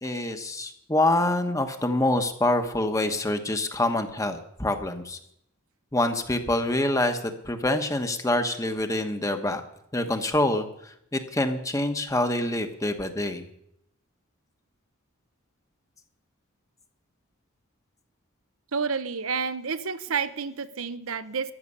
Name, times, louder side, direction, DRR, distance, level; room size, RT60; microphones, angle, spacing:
voice 1, 0.0-5.2 5.9-9.6 9.9-13.5, left 1 dB, 15° left, 7 dB, 1.1 m, -26 dB
voice 2, 18.7-21.5, right 5 dB, 80° right, 12 dB, 0.8 m, -30 dB
14.0 x 6.8 x 9.7 m, 0.74 s
head